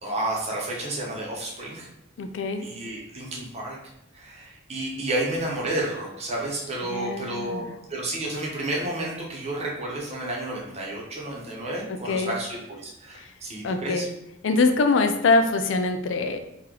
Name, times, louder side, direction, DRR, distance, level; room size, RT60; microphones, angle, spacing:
voice 1, 0.0-1.9 2.6-3.8 4.1-7.6 7.9-14.1, right 1 dB, 30° right, -3 dB, 0.8 m, -31 dB
voice 2, 2.2-2.7 6.9-7.7 11.9-12.3 13.6-14.1 14.4-16.4, left 3 dB, 65° left, 7 dB, 0.4 m, -23 dB
3.0 x 2.9 x 3.7 m, 0.81 s
head